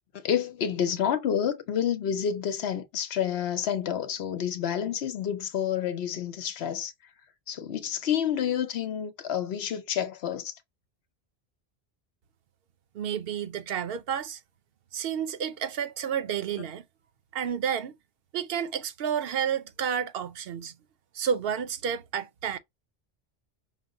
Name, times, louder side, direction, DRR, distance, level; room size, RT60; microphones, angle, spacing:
voice 1, 0.1-6.9 7.5-10.5, left 9 dB, 80° left, 0.9 m, -29 dB
voice 2, 12.9-14.4 14.9-16.9 17.3-17.9 18.3-20.7 21.1-22.6, right 8 dB, 70° right, 0.8 m, -30 dB
5.7 x 2.0 x 3.6 m
omnidirectional pair, 1.0 m